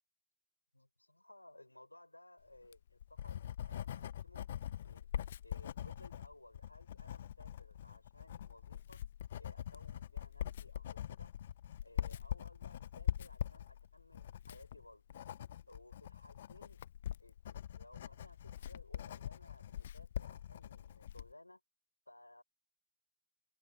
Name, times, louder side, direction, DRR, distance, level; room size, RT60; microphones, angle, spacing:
voice 1, 0.7-5.1 5.4-9.0 9.4-11.3 11.8-15.0 15.7-16.8 17.2-21.6 22.1-22.4, left 1 dB, 85° left, 4.9 m, -59 dB
Writing, 2.6-21.3, left 11 dB, 60° left, 0.5 m, -43 dB
figure-of-eight pair, 90°, 0 cm